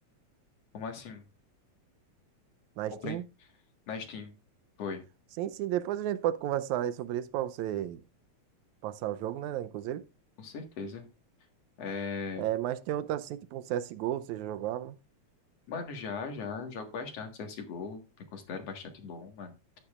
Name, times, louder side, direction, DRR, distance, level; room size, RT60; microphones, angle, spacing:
voice 1, 0.7-1.2 2.9-3.2 3.9-4.3 4.8-5.0 10.4-11.1 11.8-12.5 15.7-19.8, left 5 dB, 60° left, 2.6 m, -39 dB
voice 2, 2.8-3.2 5.4-8.0 8.8-10.0 12.4-15.0, right 12 dB, 90° right, 2.0 m, -33 dB
12.0 x 9.7 x 2.4 m
omnidirectional pair, 3.3 m